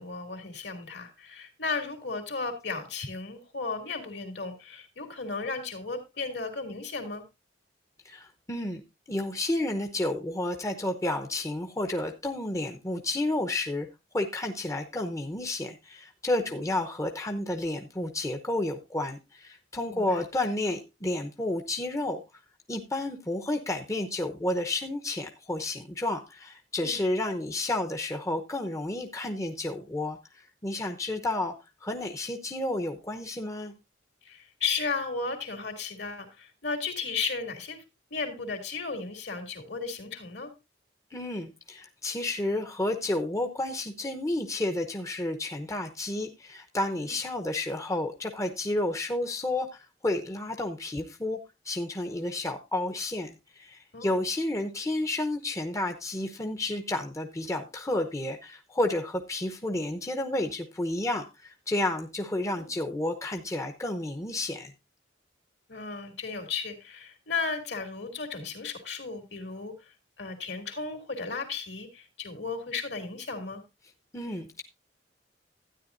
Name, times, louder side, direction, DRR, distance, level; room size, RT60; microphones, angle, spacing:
voice 1, 0.0-7.2 16.5-16.7 19.9-20.2 26.8-27.0 34.2-37.8 38.1-40.5 47.0-47.1 53.9-54.2 62.6-62.7 65.7-73.6, left 4 dB, 65° left, 2.7 m, -35 dB
voice 2, 8.0-8.8 9.1-13.9 14.1-22.2 22.7-31.5 31.8-33.7 41.1-51.4 51.6-64.7 74.1-74.6, left 1 dB, 15° left, 0.8 m, -31 dB
12.5 x 9.6 x 2.6 m
head